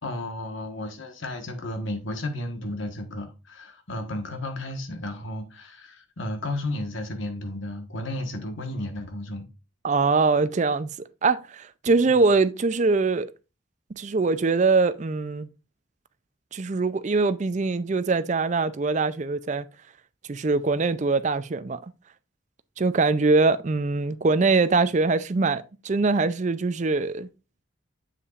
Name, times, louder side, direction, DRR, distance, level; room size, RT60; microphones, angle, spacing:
voice 1, 0.0-9.5, left 1 dB, 65° left, 1.4 m, -33 dB
voice 2, 9.8-13.3 13.9-15.5 16.5-19.7 20.3-21.8 22.8-27.3, right 3 dB, 35° right, 0.4 m, -23 dB
7.5 x 6.8 x 2.5 m
head